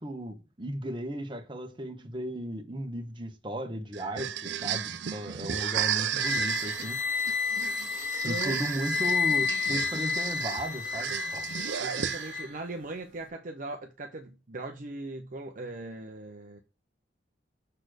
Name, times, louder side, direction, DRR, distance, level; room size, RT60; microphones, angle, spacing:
voice 1, 0.0-7.2 8.2-11.5, right 1 dB, 25° right, 1.2 m, -36 dB
sound 1, 3.9-12.6, right 9 dB, 80° right, 0.6 m, -34 dB
sound 2, 6.2-12.5, left 5 dB, 55° left, 3.2 m, -31 dB
voice 2, 8.2-8.6 11.5-16.6, right 2 dB, 50° right, 0.7 m, -39 dB
6.6 x 4.3 x 6.2 m
head